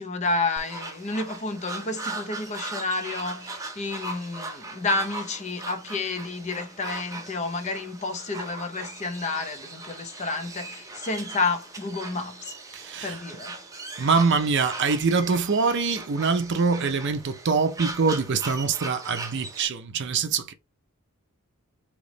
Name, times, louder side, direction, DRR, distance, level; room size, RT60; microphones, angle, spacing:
voice 1, 0.0-12.5 13.0-13.6, left 3 dB, 30° left, 0.6 m, -30 dB
sound 1, 0.6-19.7, right 2 dB, 15° right, 0.7 m, -39 dB
voice 2, 12.7-13.2 14.0-20.5, right 4 dB, 50° right, 0.6 m, -24 dB
3.3 x 2.9 x 3.9 m
head